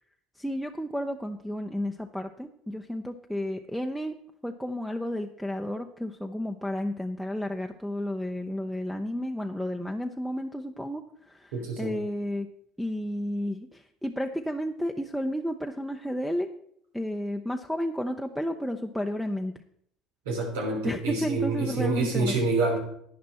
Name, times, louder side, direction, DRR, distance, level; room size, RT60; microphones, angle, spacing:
voice 1, 0.4-4.1 4.4-12.5 12.8-16.5 16.9-19.6 20.8-22.4, equal, ahead, 2 dB, 0.7 m, -32 dB
voice 2, 11.5-11.9 20.2-22.8, right 3 dB, 90° right, 2 dB, 3.2 m, -27 dB
11.0 x 9.4 x 4.3 m, 0.71 s
supercardioid pair, 85°, 0 cm